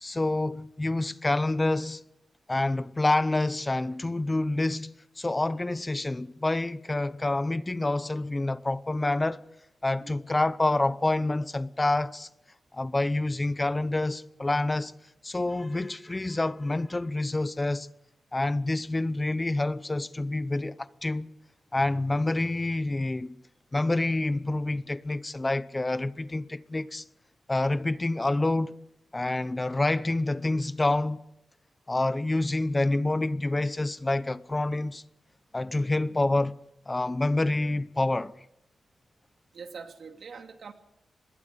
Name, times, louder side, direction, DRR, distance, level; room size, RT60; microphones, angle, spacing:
voice 1, 0.0-2.0 2.5-9.4 9.8-12.3 12.7-14.9 15.2-17.9 18.3-21.3 21.7-23.4 23.7-27.0 27.5-28.7 29.1-31.2 31.9-35.0 35.5-36.5 36.9-38.3, left 2 dB, 20° left, 0.7 m, -27 dB
voice 2, 39.5-40.7, right 5 dB, 65° right, 2.4 m, -44 dB
24.5 x 21.0 x 5.2 m
wide cardioid pair, 130°, 0 cm